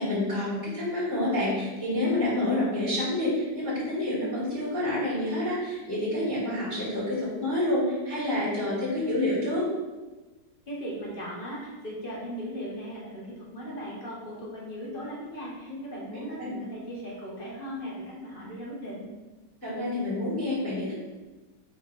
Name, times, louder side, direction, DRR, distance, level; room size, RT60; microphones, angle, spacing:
voice 1, 0.0-9.7 16.4-16.5 19.6-20.9, left 1 dB, 10° left, -9 dB, 1.2 m, -28 dB
voice 2, 10.7-19.1, equal, 40° left, -5 dB, 0.9 m, -38 dB
3.9 x 3.0 x 3.9 m, 1.2 s
omnidirectional pair, 2.0 m